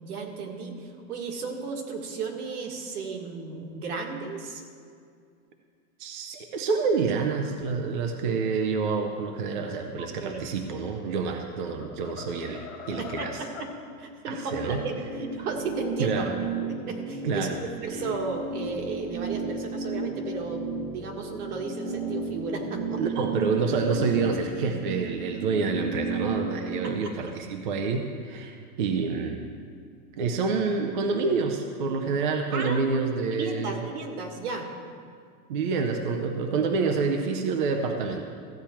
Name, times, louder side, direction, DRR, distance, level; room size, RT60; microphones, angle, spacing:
voice 1, 0.0-4.6 10.0-10.5 12.6-12.7 13.0-13.7 14.0-23.0 26.8-27.3 32.5-32.9 33.3-34.7, right 4 dB, 70° right, 2 dB, 1.8 m, -34 dB
voice 2, 6.0-13.4 14.3-14.8 16.0-16.3 17.2-17.6 17.9-18.0 23.0-29.4 30.2-33.9 35.5-38.2, right 4 dB, 35° right, 4 dB, 0.5 m, -28 dB
sound 1, 10.9-11.3 11.7-13.8, left 6 dB, 20° left, 0.9 m, -42 dB
sound 2, 14.4-26.9, right 3 dB, ahead, 1.1 m, -34 dB
14.5 x 8.5 x 4.4 m, 2.2 s
supercardioid pair, 175°, 47 cm